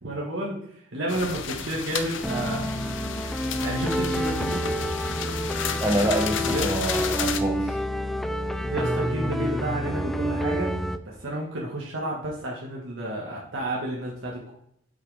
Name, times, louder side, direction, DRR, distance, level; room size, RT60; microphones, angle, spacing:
voice 1, 0.0-2.7 3.6-4.6 6.5-6.7 8.6-10.7 11.0-14.5, right 1 dB, 90° right, -3 dB, 1.6 m, -31 dB
sound 1, 1.1-7.4, left 6 dB, 75° left, 0.7 m, -32 dB
sound 2, 2.2-11.0, equal, ahead, 0.4 m, -28 dB
voice 2, 5.8-7.8, right 1 dB, 15° right, 0 dB, 0.8 m, -27 dB
7.9 x 5.7 x 3.4 m, 0.72 s
head